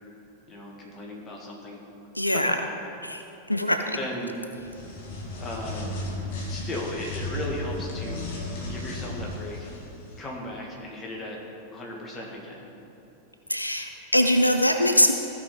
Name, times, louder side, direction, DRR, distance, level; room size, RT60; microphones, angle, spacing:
voice 1, 0.5-1.8 3.9-4.3 5.4-5.9 6.5-8.3 8.7-9.7 10.2-11.4 11.7-12.7, left 1 dB, 20° left, -2 dB, 1.8 m, -36 dB
voice 2, 2.1-2.6 3.0-4.0 13.5-15.1, left 1 dB, 85° left, 6 dB, 0.4 m, -23 dB
sound 1, 4.5-10.2, left 1 dB, 50° left, 1.6 m, -35 dB
15.0 x 5.3 x 3.9 m, 2.8 s
figure-of-eight pair, 90°, 0 cm